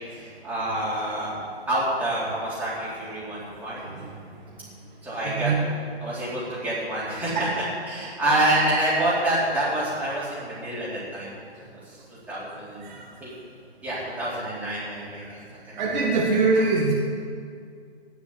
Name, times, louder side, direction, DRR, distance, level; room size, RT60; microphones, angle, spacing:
voice 1, 0.1-1.3 1.7-3.8 5.0-5.5 6.0-7.4 7.9-11.3 11.7-12.0 12.3-12.8 13.2-13.3 13.8-15.2 15.7-15.8, right 1 dB, 5° right, -10 dB, 4.1 m, -27 dB
voice 2, 5.2-5.6 7.3-7.5 12.8-13.1 15.7-16.9, right 3 dB, 45° right, -3 dB, 2.1 m, -23 dB
17.5 x 6.3 x 8.7 m, 2.2 s
figure-of-eight pair, 140°, 32 cm